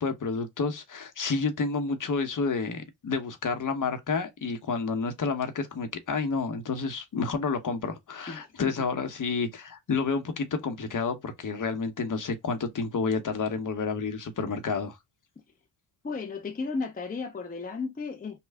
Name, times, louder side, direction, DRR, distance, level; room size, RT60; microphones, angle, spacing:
voice 1, 0.0-15.0, left 4 dB, 40° left, 1.0 m, -30 dB
voice 2, 8.3-8.7 16.0-18.4, left 4 dB, 20° left, 0.6 m, -34 dB
3.3 x 2.3 x 3.5 m
cardioid pair, 75°, 47 cm